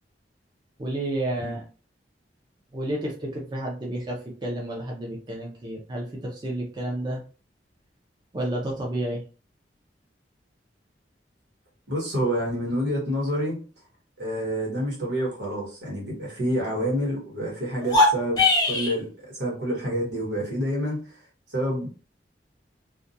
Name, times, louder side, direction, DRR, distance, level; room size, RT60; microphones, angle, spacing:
voice 1, 0.8-1.6 2.7-7.2 8.3-9.2, right 1 dB, 25° right, -2 dB, 0.5 m, -31 dB
voice 2, 11.9-13.6 14.2-21.2 21.5-21.9, equal, 80° right, -2 dB, 1.2 m, -28 dB
sound 1, 17.8-19.0, left 2 dB, 25° left, 0.6 m, -20 dB
2.3 x 2.2 x 2.7 m, 0.37 s
head